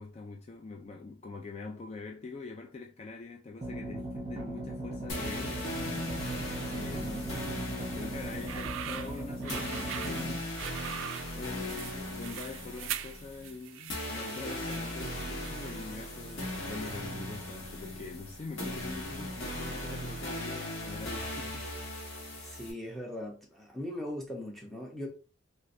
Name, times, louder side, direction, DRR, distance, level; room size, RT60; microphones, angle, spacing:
voice 1, 0.0-5.7 6.7-7.6 7.9-10.6 11.3-21.7, left 3 dB, 30° left, 0.3 m, -44 dB
sound 1, 3.6-10.4, right 1 dB, 30° right, 0.9 m, -38 dB
sound 2, 5.1-22.7, left 1 dB, 85° left, 1.3 m, -38 dB
sound 3, 8.3-15.8, right 10 dB, 80° right, 0.3 m, -42 dB
voice 2, 22.4-25.1, left 1 dB, ahead, 0.8 m, -39 dB
3.1 x 3.1 x 2.6 m
head